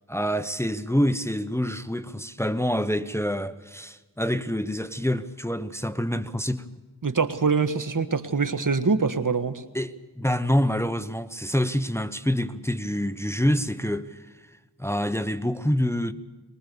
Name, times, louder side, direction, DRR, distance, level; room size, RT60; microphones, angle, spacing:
voice 1, 0.1-6.6 9.7-14.3 14.8-16.1, equal, 5° left, 1.1 m, -26 dB
voice 2, 7.0-9.6, right 5 dB, 55° right, 1.6 m, -24 dB
23.0 x 21.0 x 7.0 m
cardioid pair, 45°, 39 cm